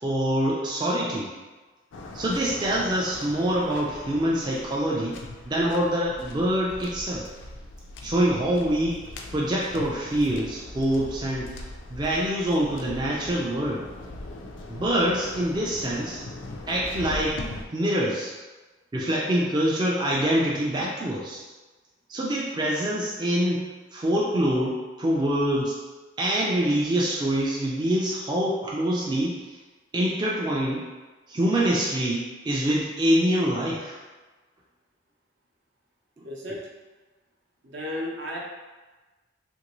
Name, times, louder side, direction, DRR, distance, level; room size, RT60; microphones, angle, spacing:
voice 1, 0.0-1.3 2.1-5.2 5.5-7.2 8.0-9.0 9.3-11.6 11.9-13.8 14.7-16.2 16.7-17.4 17.7-18.3 18.9-21.4 22.1-25.8 26.2-29.4 29.9-30.8 31.3-34.0 36.2-36.3, right 1 dB, 25° right, -4 dB, 0.3 m, -25 dB
Waves surf, 1.9-17.6, left 2 dB, 90° left, 0.4 m, -41 dB
voice 2, 36.2-36.6 37.6-38.4, left 1 dB, 70° right, -3 dB, 0.7 m, -33 dB
2.9 x 2.6 x 2.9 m, 1.2 s
head